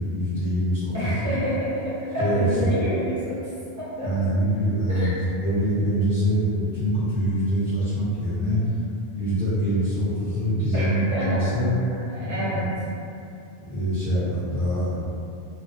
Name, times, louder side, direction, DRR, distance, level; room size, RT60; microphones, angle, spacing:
voice 1, 0.0-1.3 2.2-2.7 4.0-8.6 9.1-11.7 12.2-12.7 13.6-15.0, equal, 55° left, -14 dB, 0.9 m, -24 dB
voice 2, 0.9-3.5 3.8-4.3 4.9-5.1 10.7-11.5 12.1-12.7, equal, 20° right, -11 dB, 0.6 m, -28 dB
2.5 x 2.0 x 2.5 m, 2.6 s
omnidirectional pair, 1.1 m